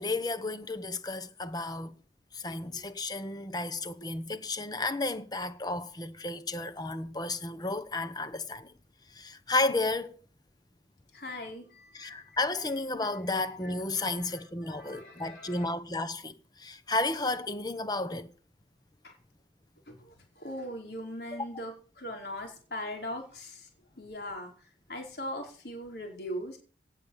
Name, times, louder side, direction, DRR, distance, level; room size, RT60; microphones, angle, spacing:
voice 1, 0.0-1.9 2.3-8.7 9.1-10.2 11.9-18.3 21.3-21.4, left 2 dB, 20° left, 1.1 m, -32 dB
voice 2, 11.1-12.4 13.6-14.4 14.7-15.7 19.0-19.1 19.9-23.7 24.0-24.5 24.9-26.6, left 1 dB, 60° left, 4.9 m, -40 dB
17.5 x 7.1 x 7.3 m
head